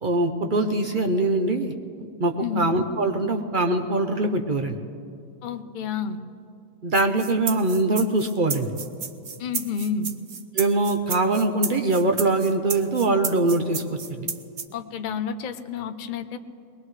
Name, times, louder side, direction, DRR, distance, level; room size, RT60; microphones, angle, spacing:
voice 1, 0.0-1.7 2.2-4.7 6.8-8.7 10.5-13.8 14.1-14.3, right 2 dB, 45° right, 5 dB, 0.6 m, -23 dB
voice 2, 5.4-6.2 9.4-10.1 14.7-16.4, left 7 dB, 60° left, 7 dB, 0.5 m, -30 dB
sound 1, 7.0-14.7, right 6 dB, 85° right, 0.4 m, -32 dB
22.0 x 20.0 x 3.2 m, 2.4 s
omnidirectional pair, 1.7 m